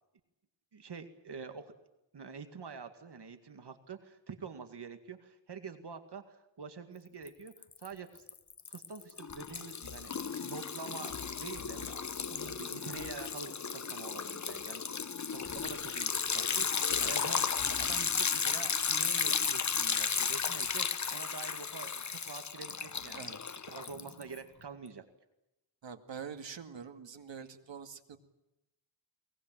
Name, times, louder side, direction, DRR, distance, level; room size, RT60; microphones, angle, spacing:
voice 1, 0.7-1.7 2.1-8.2 8.7-15.1 15.3-23.3 23.7-25.0, right 5 dB, 60° right, 8 dB, 2.1 m, -47 dB
Liquid, 7.3-7.9 8.2-24.4, left 6 dB, 40° left, 1.0 m, -34 dB
voice 2, 25.8-28.2, right 6 dB, 75° right, 7 dB, 2.3 m, -45 dB
23.0 x 20.0 x 9.2 m, 0.90 s
wide cardioid pair, 125°, 44 cm